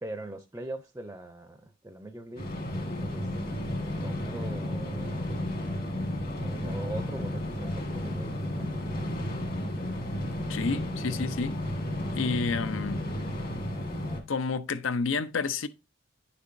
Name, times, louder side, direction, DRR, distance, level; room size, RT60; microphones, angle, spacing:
voice 1, 0.0-2.5 3.1-3.3 4.0-5.3 6.4-9.1, right 1 dB, 10° right, 0.5 m, -42 dB
sound 1, 2.4-14.2, left 1 dB, 45° left, 1.6 m, -33 dB
voice 2, 10.5-11.6 12.2-13.0 14.3-15.7, left 4 dB, 75° left, 0.6 m, -30 dB
9.6 x 6.7 x 2.6 m
head